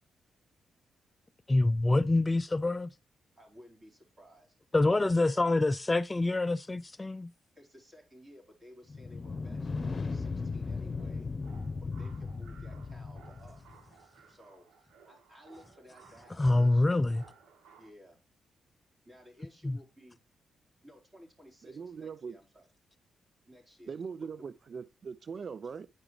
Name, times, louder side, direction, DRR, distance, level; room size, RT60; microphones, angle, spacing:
voice 1, 1.5-2.9 4.7-7.3 16.4-17.2 19.6-19.8, left 2 dB, 25° left, 0.3 m, -26 dB
voice 2, 3.4-4.6 4.9-5.6 7.6-11.3 11.8-13.6 14.3-14.7 15.1-17.1 17.8-18.2 19.0-20.2 20.8-22.7 23.5-23.9 24.2-24.6, equal, 30° right, 4.2 m, -56 dB
sound 1, 8.9-13.8, left 4 dB, 45° left, 0.8 m, -37 dB
sound 2, 10.9-17.9, right 6 dB, 75° right, 1.3 m, -59 dB
voice 3, 21.6-22.3 23.9-25.9, right 6 dB, 55° right, 0.3 m, -41 dB
9.8 x 4.9 x 3.2 m
hypercardioid pair, 45°, 0 cm